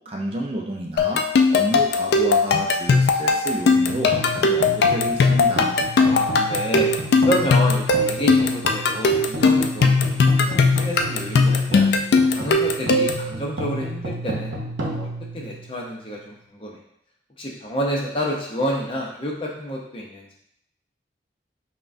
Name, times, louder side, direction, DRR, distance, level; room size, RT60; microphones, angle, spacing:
voice 1, 0.1-1.2 1.5-5.7, right 1 dB, 30° right, 0 dB, 0.4 m, -30 dB
sound 1, 1.0-13.3, left 4 dB, 65° left, 0.3 m, -19 dB
sound 2, 3.7-16.1, right 1 dB, 90° right, 0.7 m, -32 dB
voice 2, 6.1-6.9 7.2-11.9 12.3-16.8 17.4-20.3, equal, 30° left, -2 dB, 0.6 m, -29 dB
5.6 x 2.2 x 2.5 m, 0.74 s
head